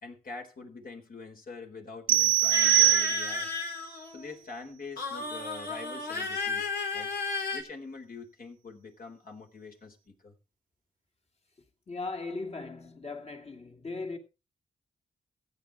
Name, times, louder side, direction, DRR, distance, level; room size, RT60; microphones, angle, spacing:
voice 1, 0.0-3.5 4.1-7.1 7.5-10.3, left 4 dB, 60° left, 4.0 m, -45 dB
sound 1, 2.1-3.6, right 15 dB, 60° right, 1.0 m, -23 dB
sound 2, 2.5-4.3 5.0-7.6, left 4 dB, 80° left, 3.7 m, -33 dB
voice 2, 11.9-14.2, left 3 dB, 40° left, 2.8 m, -38 dB
15.5 x 9.0 x 4.6 m
cardioid pair, 65°, 17 cm